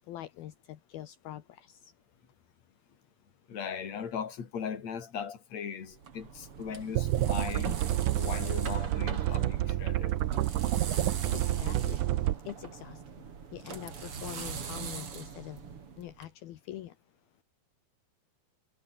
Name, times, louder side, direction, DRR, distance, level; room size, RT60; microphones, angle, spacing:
voice 1, 0.0-1.9 11.3-12.1 12.4-13.3 13.5-15.6 16.0-17.0, left 13 dB, 75° left, 3.1 m, -44 dB
voice 2, 3.5-7.8 8.2-10.1, left 7 dB, 45° left, 4.2 m, -38 dB
sound 1, 5.9-16.3, right 6 dB, 40° right, 3.0 m, -41 dB
sound 2, 7.0-12.4, right 15 dB, 75° right, 1.9 m, -29 dB
omnidirectional pair, 4.6 m